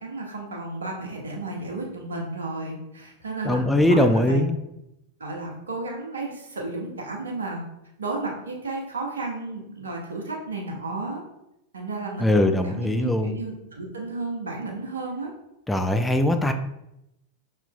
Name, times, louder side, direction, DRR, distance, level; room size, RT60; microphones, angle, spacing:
voice 1, 0.0-4.4 5.2-7.6 8.0-11.2 11.7-15.3, right 2 dB, 70° right, -1 dB, 1.0 m, -33 dB
voice 2, 3.4-4.6 12.2-13.4 15.7-16.5, left 1 dB, 5° left, 6 dB, 0.3 m, -21 dB
5.7 x 3.6 x 2.3 m, 0.84 s
figure-of-eight pair, 90°, 0 cm